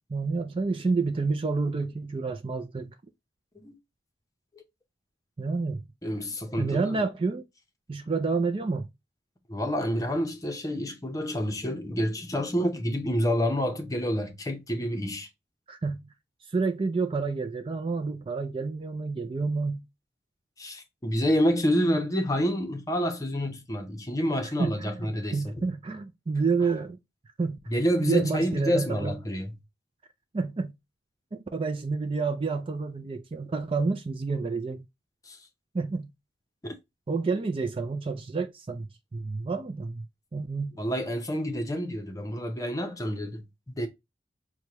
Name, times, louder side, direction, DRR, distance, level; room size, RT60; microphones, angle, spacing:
voice 1, 0.1-2.9 5.4-5.8 6.6-7.4 7.9-8.9 15.7-16.1 16.5-19.9 24.4-27.0 27.4-27.6 28.0-29.1 30.3-30.7 31.3-34.9 35.7-36.1 37.1-40.1 40.3-40.8, right 4 dB, 30° right, 0.3 m, -29 dB
voice 2, 6.0-7.0 9.5-15.3 20.6-25.5 27.7-29.5 35.3-35.4 36.6-36.7 40.8-43.9, equal, 20° left, 0.7 m, -28 dB
6.2 x 2.2 x 2.8 m
head